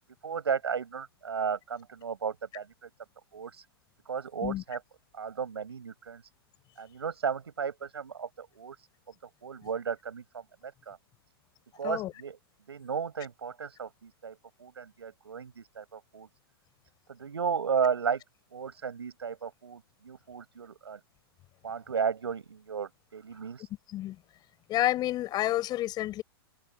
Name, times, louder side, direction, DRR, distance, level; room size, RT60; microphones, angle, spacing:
voice 1, 0.2-2.9 3.3-3.6 4.0-4.8 5.1-6.2 6.8-8.9 9.4-11.0 11.8-12.4 12.7-16.3 17.1-18.2 18.5-21.0 21.6-23.7, right 6 dB, 90° right, 6.6 m, -34 dB
voice 2, 24.7-26.2, left 14 dB, 30° left, 5.6 m, -29 dB
hypercardioid pair, 125°, 13 cm